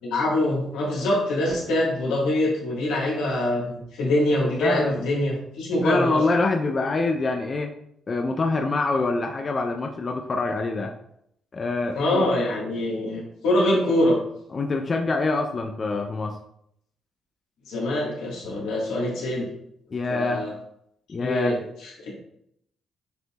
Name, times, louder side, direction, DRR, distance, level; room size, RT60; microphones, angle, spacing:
voice 1, 0.0-6.2 11.9-14.2 17.7-19.5 20.1-20.5 21.2-21.6 22.0-22.1, left 1 dB, 90° left, -4 dB, 1.5 m, -24 dB
voice 2, 4.6-5.1 5.8-7.7 8.1-10.9 11.5-12.3 14.5-16.4 19.9-20.5 21.1-21.6, left 3 dB, 35° left, 3 dB, 0.4 m, -25 dB
6.6 x 2.7 x 2.3 m, 0.74 s
cardioid pair, 90°, 0 cm